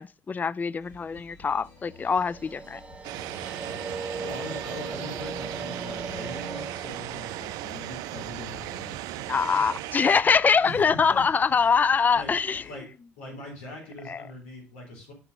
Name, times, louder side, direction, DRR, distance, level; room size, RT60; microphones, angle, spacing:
voice 1, 0.0-2.8 9.3-12.6 14.1-14.2, left 5 dB, 25° left, 0.3 m, -23 dB
sound 1, 0.8-12.8, left 3 dB, 55° left, 3.3 m, -52 dB
sound 2, 1.8-9.0, right 3 dB, 20° right, 1.0 m, -39 dB
sound 3, 3.0-10.2, right 16 dB, 65° right, 0.3 m, -37 dB
voice 2, 3.6-9.0 10.6-11.7 12.1-12.4 12.7-15.1, left 2 dB, 80° left, 3.8 m, -42 dB
6.8 x 5.9 x 5.2 m
hypercardioid pair, 60°, 7 cm